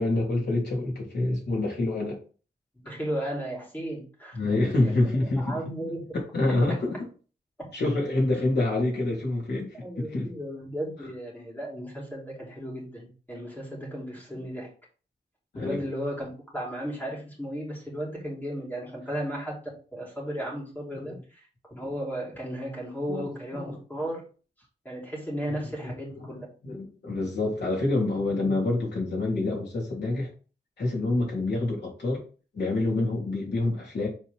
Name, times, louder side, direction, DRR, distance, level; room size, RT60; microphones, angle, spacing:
voice 1, 0.0-2.2 4.3-5.6 6.1-7.1 7.7-10.3 15.5-15.8 20.9-21.1 23.1-23.8 25.8-25.9 26.6-30.3 30.8-32.2 32.5-34.1, left 2 dB, 80° left, -2 dB, 3.4 m, -27 dB
voice 2, 2.7-6.0 6.7-6.8 9.7-14.7 15.5-19.6 19.9-24.2 24.8-26.5, equal, 10° left, -4 dB, 3.2 m, -35 dB
7.6 x 4.6 x 3.5 m, 0.37 s
wide cardioid pair, 155°, 17 cm